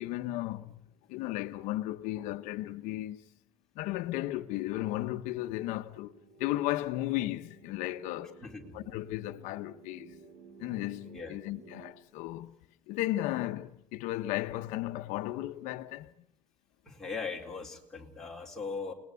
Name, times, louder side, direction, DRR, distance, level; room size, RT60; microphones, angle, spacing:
voice 1, 0.0-3.3 3.8-8.4 8.7-10.2 10.6-12.6 12.9-16.1, left 16 dB, 80° left, 1.0 m, -35 dB
sound 1, 4.3-11.9, right 4 dB, 70° right, 2.9 m, -56 dB
voice 2, 8.4-8.8 11.1-11.3 16.9-18.9, left 4 dB, 5° left, 3.9 m, -39 dB
29.0 x 20.0 x 9.5 m
cardioid pair, 170°, 13 cm